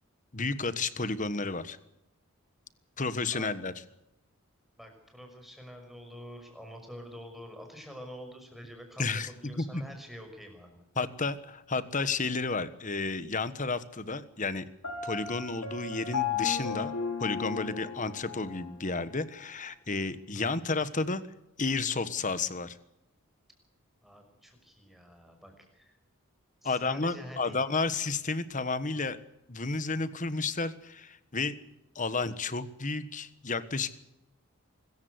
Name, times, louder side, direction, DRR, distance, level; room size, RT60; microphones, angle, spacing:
voice 1, 0.3-1.8 3.0-3.7 9.0-9.3 9.6-9.8 10.9-14.6 15.0-16.9 17.2-21.2 21.6-22.8 26.6-29.2 29.5-31.5 31.9-34.0, left 3 dB, 35° left, 13 dB, 1.4 m, -31 dB
voice 2, 4.8-9.1 9.4-10.8 20.3-21.0 24.0-25.9 26.6-27.6, equal, ahead, 3 dB, 5.8 m, -47 dB
Piano, 14.8-18.7, left 7 dB, 90° left, 6.8 m, -34 dB
24.5 x 14.5 x 8.1 m, 0.86 s
head